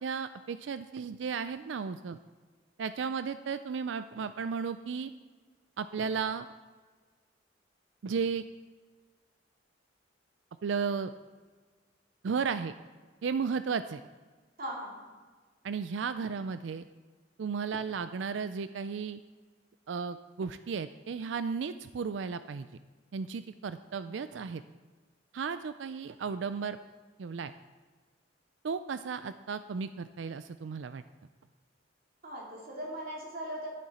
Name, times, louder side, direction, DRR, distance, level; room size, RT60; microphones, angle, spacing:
voice 1, 0.0-2.2 2.8-5.1 5.8-6.5 8.0-8.4 10.6-11.1 12.2-12.7 13.2-14.0 15.6-16.8 17.4-19.2 19.9-22.7 23.1-24.6 25.3-26.8 27.2-27.5 28.6-31.0, right 5 dB, 70° right, 12 dB, 0.4 m, -34 dB
voice 2, 14.6-15.1 32.2-33.7, right 1 dB, 55° right, -2 dB, 2.6 m, -39 dB
11.5 x 11.0 x 4.2 m, 1.4 s
head